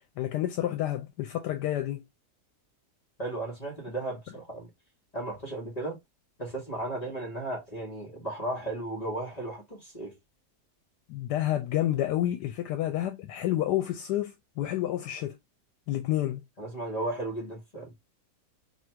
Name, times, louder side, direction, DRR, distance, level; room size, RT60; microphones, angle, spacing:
voice 1, 0.2-2.0 11.1-15.4 15.9-16.4, left 13 dB, 80° left, 1.2 m, -29 dB
voice 2, 3.2-4.7 5.1-6.0 6.4-10.1 16.6-17.9, right 2 dB, 30° left, 1.1 m, -35 dB
3.0 x 2.5 x 4.4 m
omnidirectional pair, 1.8 m